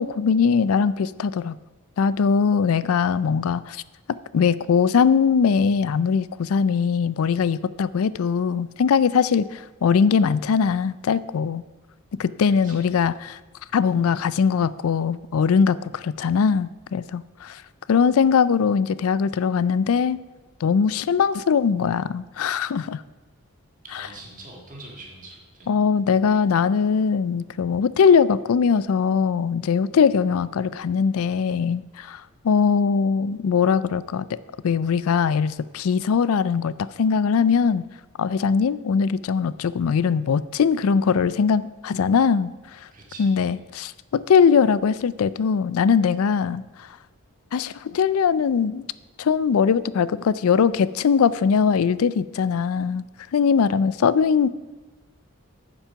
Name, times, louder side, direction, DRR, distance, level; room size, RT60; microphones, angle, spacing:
voice 1, 0.0-1.6 2.0-3.8 4.3-11.6 12.2-13.4 13.7-17.6 17.9-20.2 20.6-23.0 25.7-34.4 34.6-37.9 38.2-42.5 43.2-46.6 47.5-48.8 49.2-53.0 53.3-54.5, left 6 dB, 80° left, 17 dB, 0.4 m, -21 dB
voice 2, 12.5-13.4 23.8-25.8 42.9-43.5, right 2 dB, 35° right, -1 dB, 1.8 m, -44 dB
8.8 x 7.4 x 5.7 m, 1.2 s
head